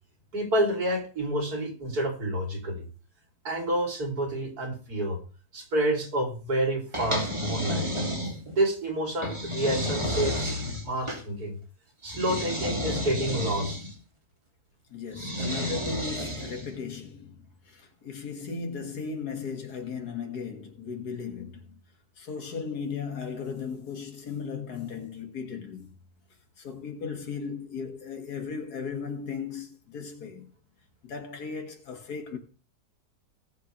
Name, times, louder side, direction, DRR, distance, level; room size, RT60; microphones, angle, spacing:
voice 1, 0.3-2.9 3.4-5.2 5.5-7.9 8.5-11.6 12.0-13.8, right 1 dB, 75° right, 3.5 m, -29 dB
sound 1, 6.9-8.6 9.2-11.2 12.0-13.9 15.1-16.7, equal, 20° right, 2.3 m, -31 dB
voice 2, 14.9-21.8 22.2-26.0 26.6-30.5 31.0-32.4, left 5 dB, 80° left, 2.3 m, -36 dB
18.5 x 6.9 x 3.2 m
omnidirectional pair, 1.6 m